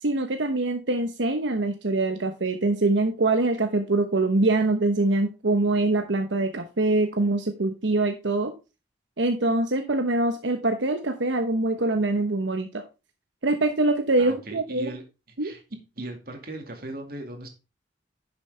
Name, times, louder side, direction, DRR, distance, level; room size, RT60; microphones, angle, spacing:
voice 1, 0.0-8.5 9.2-12.8 13.4-14.9 15.4-15.5, right 2 dB, 85° right, 5 dB, 1.0 m, -24 dB
voice 2, 14.2-15.0 15.4-15.6 16.0-17.5, right 2 dB, 55° right, 4 dB, 2.3 m, -37 dB
10.5 x 6.9 x 3.4 m, 0.28 s
head